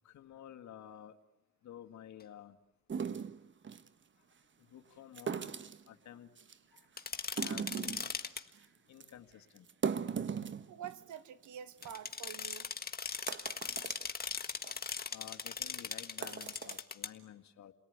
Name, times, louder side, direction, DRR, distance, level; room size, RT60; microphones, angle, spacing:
voice 1, 0.1-1.2 1.6-2.6 4.7-5.5 5.9-6.3 7.4-8.0 8.9-9.7 15.1-17.7, left 10 dB, 65° left, 2.1 m, -51 dB
sound 1, 2.9-3.9 5.2-5.9 6.4-6.8 7.2-8.1 8.5-8.7 9.0-9.1 9.6-11.1 11.5-11.6 11.8-11.9 12.6-12.7 13.1-14.1 14.5-14.8 15.3-15.4 16.0-16.8, right 6 dB, 40° right, 1.2 m, -38 dB
sound 2, 7.0-8.4 11.8-17.1, left 5 dB, 30° left, 1.7 m, -39 dB
voice 2, 10.7-12.7, right 9 dB, 75° right, 1.5 m, -47 dB
29.5 x 18.5 x 9.6 m
cardioid pair, 90°, 30 cm